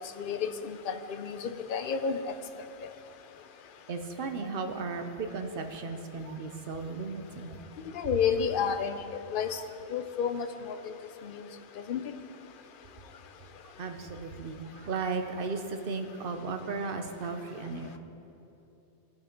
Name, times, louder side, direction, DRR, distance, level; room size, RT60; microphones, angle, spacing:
voice 1, 0.2-2.2 7.9-9.0 9.3-9.6 9.9-10.5 10.8-10.9 11.2-11.4 11.9-12.0, left 7 dB, 55° left, 9 dB, 0.7 m, -30 dB
voice 2, 3.9-7.6 9.5-9.7 13.6-18.0, right 4 dB, 55° right, 6 dB, 0.9 m, -35 dB
17.5 x 5.8 x 4.4 m, 2.9 s
omnidirectional pair, 1.2 m